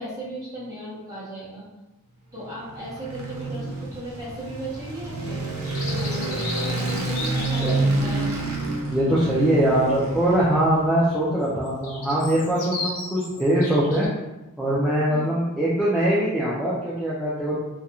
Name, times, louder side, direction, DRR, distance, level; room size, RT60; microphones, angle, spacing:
voice 1, 0.0-1.6 2.3-5.4 5.9-8.3 15.1-15.3, right 1 dB, 15° right, -9 dB, 0.9 m, -36 dB
sound 1, 2.4-10.8, right 2 dB, 80° right, 0.6 m, -28 dB
sound 2, 5.4-7.9 11.4-14.1, left 2 dB, 75° left, 0.9 m, -35 dB
voice 2, 7.6-7.9 8.9-14.1 14.6-17.6, right 1 dB, ahead, -10 dB, 0.3 m, -22 dB
2.4 x 2.1 x 2.8 m, 1.0 s
head